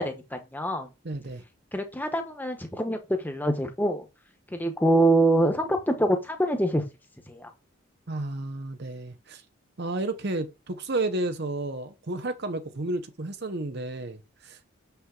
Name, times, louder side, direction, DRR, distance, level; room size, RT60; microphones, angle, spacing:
voice 1, 0.0-0.9 1.7-4.1 4.5-6.8 7.3-7.5, right 1 dB, 10° left, 1.1 m, -25 dB
voice 2, 1.0-1.4 8.1-9.4 9.8-14.8, right 2 dB, 50° right, 0.9 m, -32 dB
6.9 x 5.8 x 3.9 m
head